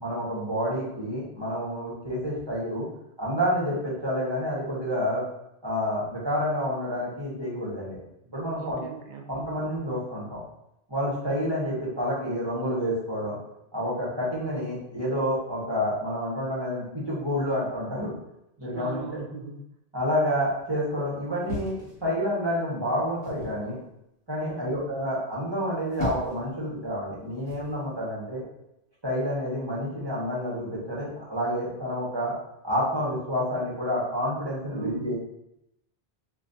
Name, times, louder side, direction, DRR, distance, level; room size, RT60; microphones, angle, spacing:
voice 1, 0.0-2.9 3.2-5.2 5.6-8.0 8.3-8.8 9.3-10.4 10.9-13.4 13.7-18.1 18.6-19.0 19.9-21.7 22.0-23.8 24.3-28.4 29.0-32.3 32.6-35.1, equal, 25° right, -7 dB, 1.3 m, -29 dB
voice 2, 8.5-9.5 18.7-19.6 24.4-24.8 34.7-35.1, right 5 dB, 55° right, 3 dB, 0.6 m, -38 dB
sound 1, 21.5-22.5 23.2-23.6 25.6-26.5 27.5-27.7, left 2 dB, 25° left, 1.6 m, -36 dB
5.2 x 2.4 x 2.6 m, 0.82 s
omnidirectional pair, 1.1 m